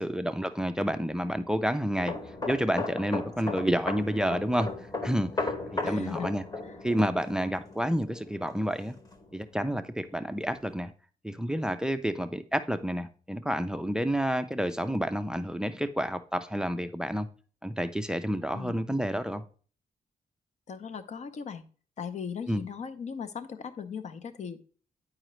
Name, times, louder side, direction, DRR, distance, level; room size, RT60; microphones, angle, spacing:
voice 1, 0.0-2.1 2.5-4.7 5.0-6.4 6.8-9.0 9.3-10.9 11.2-17.3 17.6-19.4 22.5-22.6, equal, 5° right, 0.3 m, -29 dB
sound 1, 2.0-9.5 9.8-10.0, left 3 dB, 25° left, 1.0 m, -36 dB
voice 2, 5.8-6.3 6.6-6.8 18.5-18.8 20.7-21.7 22.0-24.6, left 6 dB, 50° left, 0.6 m, -38 dB
8.9 x 4.9 x 3.0 m
wide cardioid pair, 150°, 15 cm